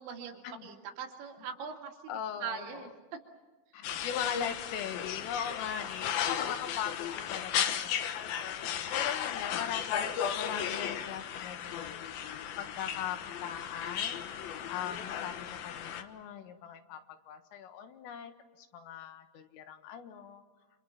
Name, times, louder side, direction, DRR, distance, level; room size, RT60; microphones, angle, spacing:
voice 1, 0.0-2.1 2.4-3.2 6.0-6.1, right 6 dB, 70° right, 2 dB, 4.5 m, -41 dB
voice 2, 2.1-2.8 3.7-7.9 8.3-8.5 8.9-12.0 12.6-18.3 18.6-20.4, left 8 dB, 90° left, 7 dB, 4.2 m, -40 dB
sound 1, 3.8-16.0, left 9 dB, 70° left, 2.4 m, -35 dB
29.5 x 27.0 x 5.9 m, 1.2 s
omnidirectional pair, 5.7 m